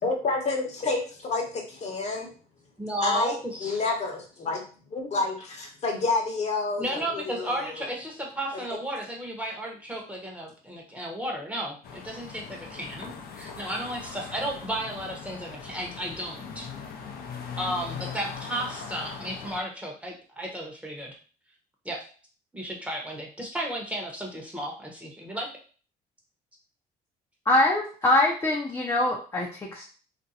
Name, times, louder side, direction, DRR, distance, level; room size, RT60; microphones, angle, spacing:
voice 1, 0.0-2.3 3.0-4.6 4.9-7.9, left 3 dB, 40° left, 2 dB, 0.9 m, -29 dB
voice 2, 2.8-3.8 6.8-16.7 17.6-21.2 21.8-22.0 22.5-25.5, right 1 dB, 10° right, -1 dB, 0.9 m, -33 dB
sound 1, 11.8-19.6, left 6 dB, 65° left, 0.5 m, -40 dB
voice 3, 27.5-29.8, left 1 dB, 20° left, -2 dB, 0.6 m, -23 dB
2.6 x 2.2 x 4.0 m, 0.39 s
cardioid pair, 110°, 17 cm